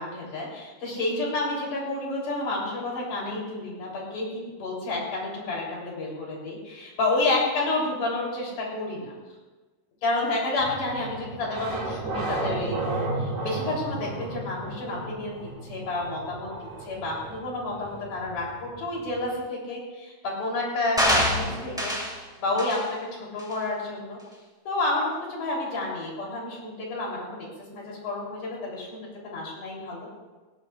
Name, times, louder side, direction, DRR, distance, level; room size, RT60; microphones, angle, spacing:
voice 1, 0.0-9.1 10.0-16.5 16.9-22.0 22.4-24.2 24.6-27.5 27.7-30.1, left 2 dB, 60° left, -3 dB, 4.9 m, -30 dB
sound 1, 10.6-19.4, right 2 dB, 85° right, 5.1 m, -34 dB
sound 2, 21.0-22.2 22.6-22.8 23.4-23.5, equal, 5° right, 0.7 m, -25 dB
18.5 x 17.5 x 2.4 m, 1.3 s
omnidirectional pair, 4.2 m